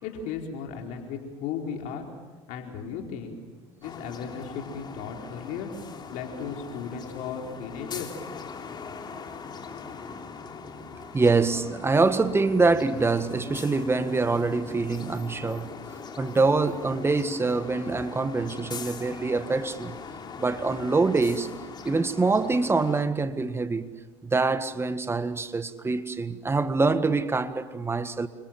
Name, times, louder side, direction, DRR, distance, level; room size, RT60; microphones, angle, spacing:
voice 1, 0.0-2.1 2.5-3.4 3.8-5.7 6.1-8.2, left 6 dB, 60° left, 4.5 m, -35 dB
sound 1, 3.8-23.0, left 5 dB, 30° left, 3.7 m, -41 dB
voice 2, 11.0-15.7 16.2-19.9 20.4-21.5 21.8-23.9 24.2-28.3, right 3 dB, 15° right, 1.7 m, -25 dB
30.0 x 26.0 x 7.6 m
hypercardioid pair, 85°, 14 cm